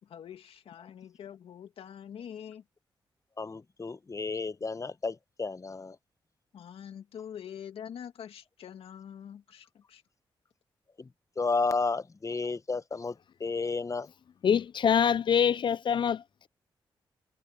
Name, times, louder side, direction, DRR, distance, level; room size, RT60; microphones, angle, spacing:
voice 1, 0.0-2.6 6.5-10.0, left 9 dB, 80° left, 2.4 m, -45 dB
voice 2, 3.4-6.0 11.0-11.1 11.4-14.1, left 4 dB, 35° left, 1.0 m, -32 dB
voice 3, 14.4-16.5, left 8 dB, 55° left, 0.4 m, -25 dB
supercardioid pair, 50°, 10 cm